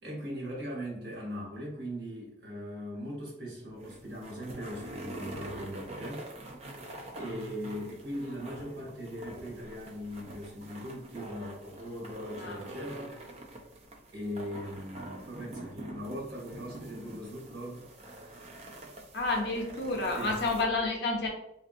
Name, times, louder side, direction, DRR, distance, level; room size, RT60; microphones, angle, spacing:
voice 1, 0.0-6.3 7.1-13.2 14.1-17.9 18.2-18.6 20.1-20.4, equal, 55° right, -4 dB, 1.3 m, -40 dB
sound 1, 3.6-20.6, right 1 dB, 35° right, 0.4 m, -45 dB
voice 2, 19.1-21.3, left 3 dB, 60° left, 0 dB, 0.7 m, -30 dB
3.4 x 2.5 x 2.6 m, 0.83 s
head